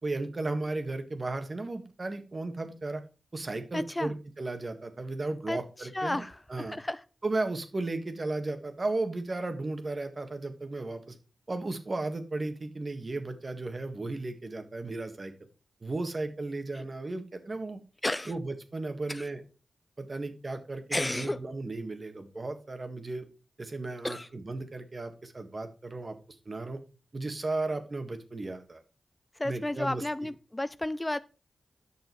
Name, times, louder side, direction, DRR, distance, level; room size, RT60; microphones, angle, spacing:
voice 1, 0.0-3.0 3.3-6.2 6.5-6.8 7.2-11.2 11.5-15.3 15.8-17.8 18.2-19.4 20.0-23.3 23.6-26.8 27.1-28.8 29.4-30.3, right 2 dB, 45° right, 1.7 m, -35 dB
voice 2, 3.7-4.1 5.5-7.0 18.0-18.3 19.1-19.3 20.9-21.4 24.0-24.3 29.4-31.2, left 1 dB, 20° left, 0.4 m, -32 dB
8.7 x 6.3 x 4.6 m
cardioid pair, 45°, 0 cm